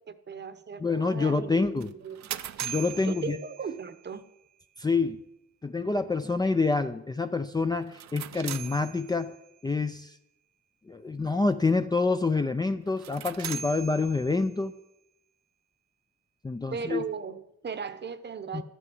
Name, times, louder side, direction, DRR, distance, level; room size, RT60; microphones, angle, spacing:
voice 1, 0.0-2.3 3.0-4.2 16.7-18.6, right 5 dB, 35° right, 11 dB, 0.9 m, -37 dB
voice 2, 0.8-1.9 2.6-3.4 4.8-5.2 5.6-9.3 9.6-10.1 10.9-14.7 16.4-17.0 18.5-18.6, left 3 dB, 15° left, 8 dB, 0.5 m, -27 dB
sound 1, 1.8-4.0 7.8-9.5 12.9-14.7, right 9 dB, 65° right, 0.7 m, -40 dB
12.0 x 6.2 x 7.8 m, 0.84 s
cardioid pair, 90°, 30 cm